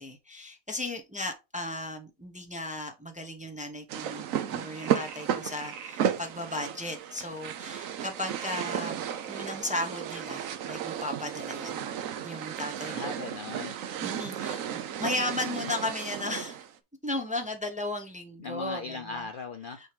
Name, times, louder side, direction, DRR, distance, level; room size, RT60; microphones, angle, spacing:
voice 1, 0.0-11.9 12.2-12.9 13.7-13.8 14.0-16.6 17.0-19.3 19.8-19.9, left 2 dB, 10° right, 0.6 m, -35 dB
sound 1, 3.9-16.7, right 9 dB, 65° right, 1.0 m, -34 dB
Frog, 4.8-6.0 6.6-6.7 8.0-10.7 11.7-11.9 12.1-12.2 12.5-12.6 12.9-13.0 13.6-14.3, right 6 dB, 85° right, 1.6 m, -47 dB
voice 2, 12.9-13.7 18.4-19.8, left 4 dB, 85° left, 0.4 m, -38 dB
6.4 x 3.0 x 4.9 m
omnidirectional pair, 1.7 m